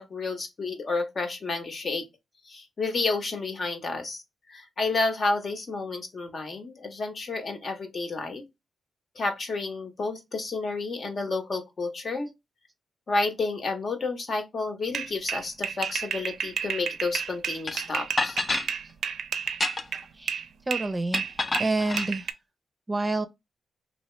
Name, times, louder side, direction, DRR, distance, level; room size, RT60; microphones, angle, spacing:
voice 1, 0.0-2.1 2.5-4.2 4.5-8.4 9.1-12.3 13.1-18.4, left 3 dB, 55° left, 1.0 m, -30 dB
sound 1, 14.9-20.5 20.7-22.3, right 7 dB, 80° right, 0.4 m, -31 dB
sound 2, 17.7-17.8 18.2-18.7 19.5-20.0 21.1-22.1, left 3 dB, 35° left, 0.4 m, -28 dB
voice 2, 20.2-21.3 21.6-22.2 22.9-23.3, right 2 dB, 25° right, 0.5 m, -28 dB
2.8 x 2.8 x 3.2 m
cardioid pair, 80°, 0 cm